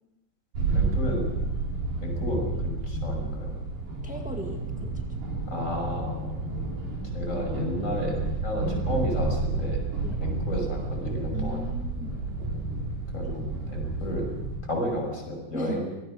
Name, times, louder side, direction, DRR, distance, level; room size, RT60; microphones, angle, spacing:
sound 1, 0.5-14.6, right 3 dB, 85° right, 6.2 m, -30 dB
voice 1, 0.7-1.3 2.0-3.5 5.5-6.5 7.1-9.8 10.2-11.6 13.1-14.3 14.6-15.9, equal, 20° left, 1 dB, 6.2 m, -32 dB
voice 2, 4.0-5.0 10.0-10.2 11.3-12.2 15.5-15.8, equal, 5° right, 3 dB, 0.6 m, -37 dB
25.0 x 19.0 x 6.3 m, 0.97 s
omnidirectional pair, 3.8 m